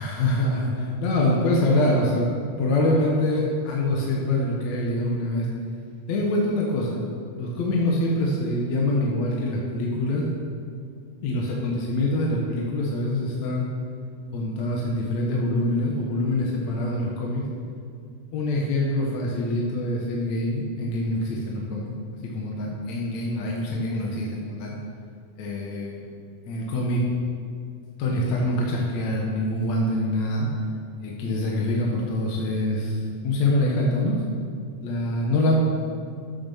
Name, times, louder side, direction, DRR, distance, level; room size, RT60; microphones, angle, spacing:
voice 1, 0.0-2.3 2.6-5.5 6.1-7.0 7.3-10.3 11.2-13.7 14.3-17.4 18.3-21.9 22.2-24.8 25.4-26.0 26.5-27.1 28.0-30.5 31.0-34.2 34.8-35.6, left 1 dB, 60° left, -3 dB, 2.4 m, -25 dB
12.5 x 7.8 x 7.0 m, 2.3 s
omnidirectional pair, 3.8 m